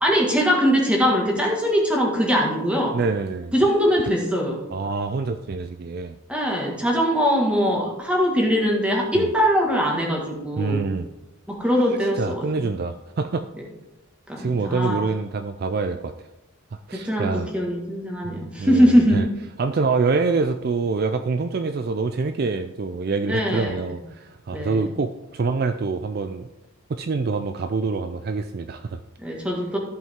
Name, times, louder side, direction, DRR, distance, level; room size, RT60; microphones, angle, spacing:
voice 1, 0.0-3.0 3.5-4.6 6.3-10.8 11.5-12.7 14.3-15.0 16.9-19.2 23.3-23.8 24.5-24.8 29.2-29.8, equal, 5° right, -1 dB, 1.7 m, -21 dB
voice 2, 2.9-3.5 4.7-6.2 9.1-9.3 10.6-11.1 12.2-13.5 14.4-16.1 16.7-17.5 18.2-19.3 19.6-26.5 26.9-29.0, right 4 dB, 45° right, 8 dB, 0.4 m, -26 dB
14.5 x 5.4 x 3.7 m, 0.97 s
head